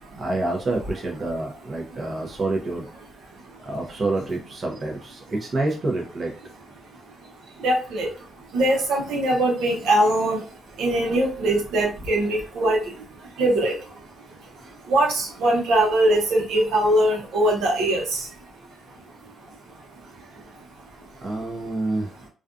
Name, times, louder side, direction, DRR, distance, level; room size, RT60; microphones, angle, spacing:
voice 1, 0.2-2.9 3.6-6.4 14.6-14.7 21.2-22.1, right 2 dB, 40° right, 0 dB, 0.6 m, -27 dB
voice 2, 1.9-2.3 3.3-3.6 6.8-18.4 18.9-20.7 21.0-21.3, right 1 dB, 85° right, -2 dB, 0.9 m, -24 dB
2.4 x 2.3 x 2.5 m, 0.37 s
cardioid pair, 90°, 0 cm